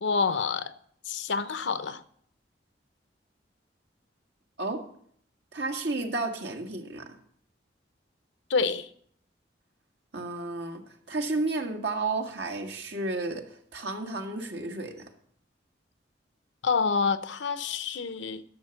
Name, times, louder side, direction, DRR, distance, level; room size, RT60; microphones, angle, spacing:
voice 1, 0.0-0.7 1.1-2.0 8.5-8.9 16.6-18.4, left 5 dB, 85° left, 0.7 m, -27 dB
voice 2, 5.5-7.1 10.1-15.1, right 2 dB, 70° right, 1.8 m, -32 dB
11.5 x 6.5 x 7.0 m
head